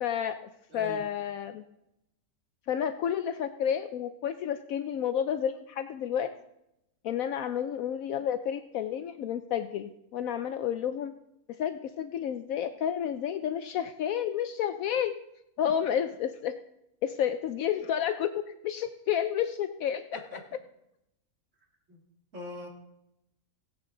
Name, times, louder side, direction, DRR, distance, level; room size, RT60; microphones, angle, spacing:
voice 1, 0.0-0.4 0.7-1.6 2.7-6.3 7.0-11.1 11.6-15.2 15.6-16.6 17.0-20.2, left 9 dB, 70° left, 9 dB, 0.9 m, -30 dB
voice 2, 0.7-1.1 20.1-20.4 21.9-22.0 22.3-22.7, left 2 dB, 55° right, -1 dB, 2.7 m, -42 dB
16.5 x 9.9 x 3.8 m, 0.86 s
omnidirectional pair, 1.6 m